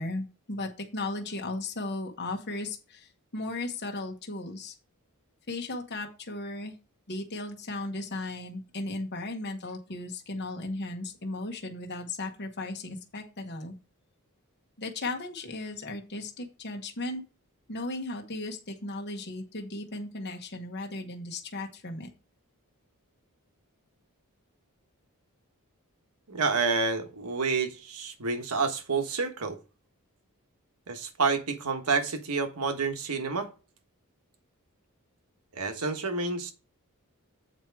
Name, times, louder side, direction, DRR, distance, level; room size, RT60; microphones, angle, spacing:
voice 1, 0.0-3.1 3.3-4.7 5.5-6.7 7.1-13.7 14.8-17.2 17.7-22.1, left 2 dB, 50° left, 1.1 m, -36 dB
voice 2, 26.3-29.6 30.9-33.5 35.5-36.5, right 4 dB, 80° right, 1.3 m, -29 dB
8.1 x 4.6 x 4.6 m
head